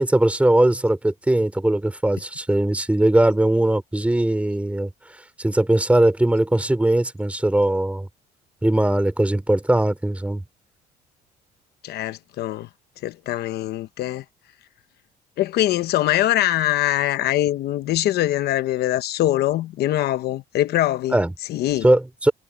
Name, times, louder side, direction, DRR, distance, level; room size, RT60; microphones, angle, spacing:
voice 1, 0.0-4.9 5.4-8.1 8.6-10.4 21.1-21.3 21.8-22.3, right 1 dB, 10° right, 3.4 m, -20 dB
voice 2, 11.8-12.7 13.0-14.2 15.4-21.2 21.5-21.9, left 14 dB, 70° left, 1.0 m, -23 dB
cardioid pair, 110°, 17 cm